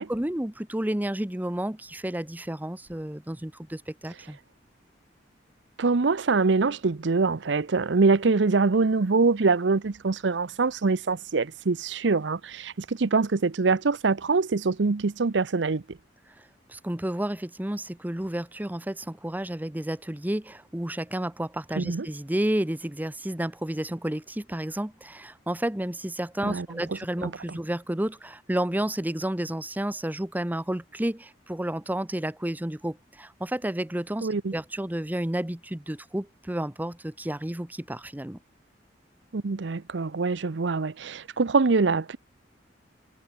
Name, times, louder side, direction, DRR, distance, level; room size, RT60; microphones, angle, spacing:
voice 1, 0.0-4.4 16.7-38.4, right 1 dB, 10° right, 0.8 m, -31 dB
voice 2, 5.8-16.0 21.8-22.1 26.4-26.7 27.2-27.3 34.2-34.5 39.3-42.2, right 4 dB, 70° right, 0.7 m, -24 dB
head